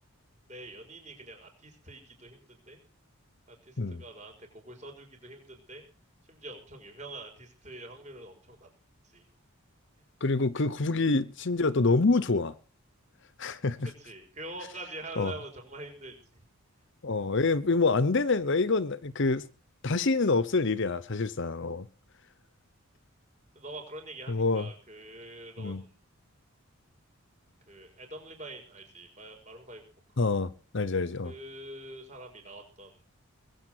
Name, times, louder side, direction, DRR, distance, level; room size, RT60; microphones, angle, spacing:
voice 1, 0.5-2.8 3.5-5.8 6.3-8.7 9.1-9.2 14.0-16.4 23.5-26.0 27.7-29.9 30.1-30.3 31.2-33.0, right 1 dB, 30° right, 5.6 m, -45 dB
voice 2, 10.2-12.5 13.4-13.9 15.2-15.3 17.0-19.4 19.8-21.9 24.3-24.7 25.6-25.8 30.2-31.3, left 3 dB, 55° left, 0.8 m, -26 dB
21.0 x 8.5 x 6.2 m
head